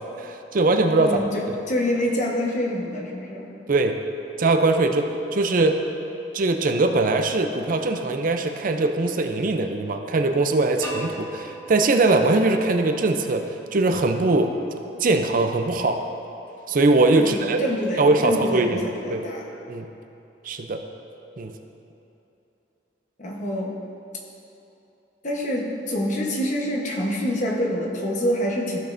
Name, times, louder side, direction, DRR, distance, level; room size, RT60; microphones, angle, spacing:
voice 1, 0.2-1.2 3.7-4.0 4.4-5.8 6.3-13.4 13.7-14.5 15.0-16.0 16.7-17.6 18.0-19.3 19.7-19.9 20.4-20.8 21.4-21.5, right 2 dB, 50° right, 5 dB, 0.5 m, -21 dB
voice 2, 1.0-3.5 17.2-19.5 23.2-23.8 25.2-28.8, equal, 45° left, -1 dB, 1.1 m, -26 dB
sound 1, 10.8-13.7, equal, 15° left, 1.1 m, -39 dB
14.5 x 6.3 x 2.6 m, 2.9 s
head